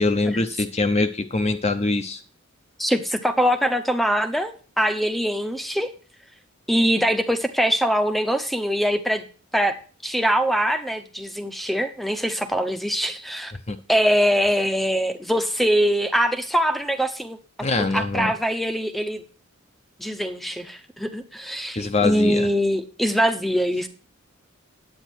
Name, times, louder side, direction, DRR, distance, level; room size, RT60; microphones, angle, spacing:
voice 1, 0.0-2.2 13.7-13.8 17.6-18.3 21.8-22.5, left 3 dB, 30° left, 7 dB, 0.7 m, -23 dB
voice 2, 2.8-5.9 6.7-9.3 9.5-9.7 10.0-13.5 13.9-17.4 17.8-19.2 20.0-23.9, equal, ahead, 8 dB, 0.8 m, -23 dB
10.0 x 8.7 x 4.4 m, 0.39 s
head